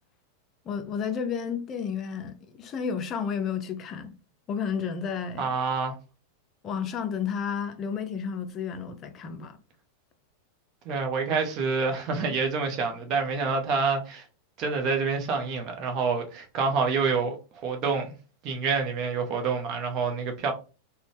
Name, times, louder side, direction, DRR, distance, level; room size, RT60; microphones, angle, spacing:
voice 1, 0.7-4.1 4.5-5.5 6.6-9.6, left 7 dB, 30° left, 0.5 m, -31 dB
voice 2, 5.4-5.9 10.8-14.2 14.6-17.4 17.6-18.1 18.4-20.5, right 5 dB, 35° right, 0.9 m, -27 dB
3.9 x 2.3 x 3.4 m
figure-of-eight pair, 90°, 0 cm